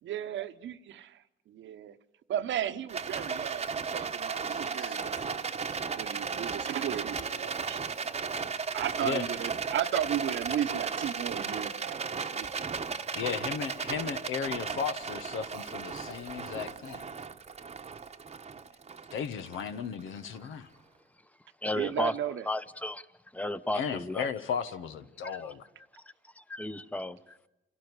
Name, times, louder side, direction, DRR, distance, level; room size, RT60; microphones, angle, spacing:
voice 1, 0.0-2.0 2.3-5.6 5.9-7.8 8.7-12.5 21.7-22.5, right 10 dB, 70° right, 1.0 m, -35 dB
Rattle, 2.9-20.3, right 5 dB, 30° right, 1.0 m, -35 dB
voice 2, 4.5-4.9 9.0-9.2 13.1-17.1 19.1-20.7 23.7-25.6, left 7 dB, 80° left, 1.4 m, -35 dB
sound 1, 4.6-5.3 6.7-7.6 8.9-9.4 10.3-11.3 12.2-12.9, left 3 dB, 40° left, 4.7 m, -53 dB
voice 3, 21.6-22.2 22.5-23.1 23.3-24.3 25.3-25.4 26.4-27.4, left 1 dB, 5° left, 0.9 m, -33 dB
28.0 x 11.5 x 9.7 m
cardioid pair, 90°, 20 cm